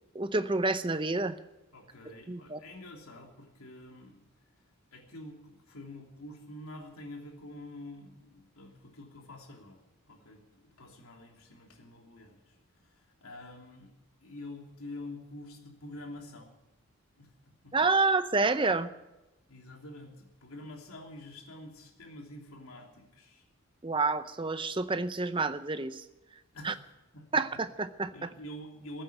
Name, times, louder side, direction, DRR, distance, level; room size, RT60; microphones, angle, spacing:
voice 1, 0.1-1.4 2.3-2.6 17.7-18.9 23.8-26.0 26.6-26.7 27.3-28.3, right 3 dB, 20° right, 12 dB, 0.6 m, -28 dB
voice 2, 1.7-4.3 4.9-13.9 14.2-16.5 17.2-17.3 17.6-17.8 19.5-23.4 26.5-27.3 28.1-29.0, left 1 dB, 80° left, 1 dB, 3.1 m, -47 dB
15.0 x 8.9 x 10.0 m, 0.99 s
head